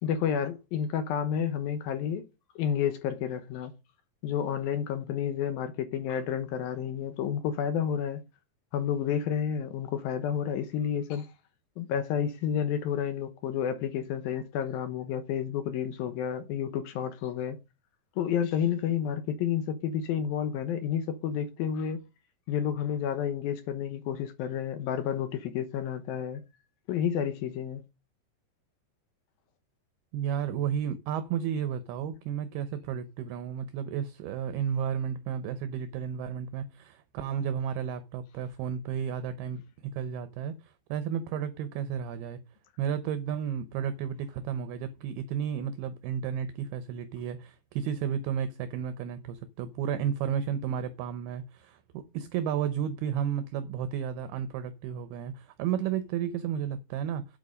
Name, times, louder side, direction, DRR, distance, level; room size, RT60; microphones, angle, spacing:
voice 1, 0.0-2.2 2.6-3.7 4.2-8.2 8.7-11.3 11.8-17.6 18.2-22.0 22.5-26.4 26.9-27.8, left 8 dB, 70° left, 2.5 m, -30 dB
voice 2, 30.1-42.4 42.8-57.4, right 8 dB, 75° right, 2.6 m, -32 dB
8.7 x 8.1 x 5.1 m
omnidirectional pair, 4.9 m